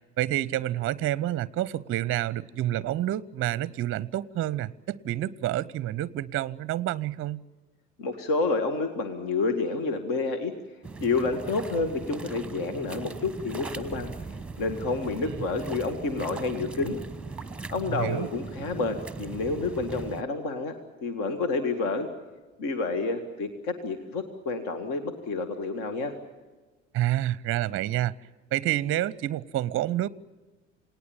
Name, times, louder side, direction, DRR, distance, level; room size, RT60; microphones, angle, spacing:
voice 1, 0.2-7.4 17.9-18.3 26.9-28.1 28.5-30.1, right 13 dB, 35° right, 22 dB, 0.6 m, -28 dB
voice 2, 8.0-10.5 11.0-14.1 14.6-17.0 17.7-20.8 21.0-22.1 22.6-26.1, left 3 dB, 55° left, 8 dB, 2.0 m, -29 dB
sound 1, 10.8-20.2, right 3 dB, 5° right, 1.1 m, -39 dB
29.0 x 18.5 x 7.3 m, 1.3 s
figure-of-eight pair, 60°, 39 cm